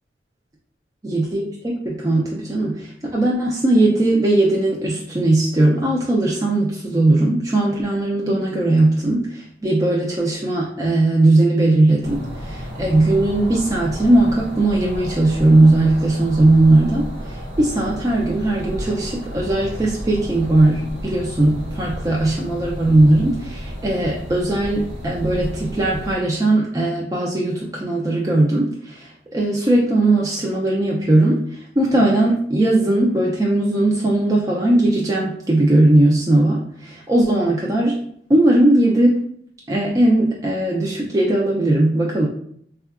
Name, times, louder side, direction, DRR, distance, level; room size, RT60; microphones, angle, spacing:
voice 1, 1.0-38.0 38.3-39.2 39.7-42.3, right 2 dB, 20° right, -3 dB, 0.3 m, -18 dB
sound 1, 12.0-26.1, equal, 90° right, 1.0 m, -32 dB
3.5 x 2.2 x 2.3 m, 0.66 s
head